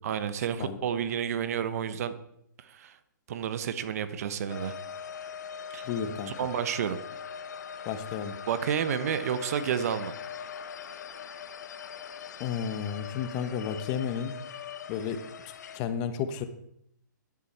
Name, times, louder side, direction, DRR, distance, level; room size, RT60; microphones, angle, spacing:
voice 1, 0.0-2.1 2.6-3.0 3.3-4.7 5.7-5.8 6.2-7.0 8.5-10.2, right 8 dB, 50° right, 12 dB, 1.1 m, -30 dB
sound 1, 4.5-15.8, left 7 dB, 60° left, 1.0 m, -41 dB
voice 2, 5.9-6.3 7.8-8.4 12.4-14.4 14.9-15.2 15.7-16.5, left 7 dB, 30° left, 10 dB, 1.1 m, -32 dB
13.0 x 10.5 x 4.4 m, 0.73 s
hypercardioid pair, 140°, 10 cm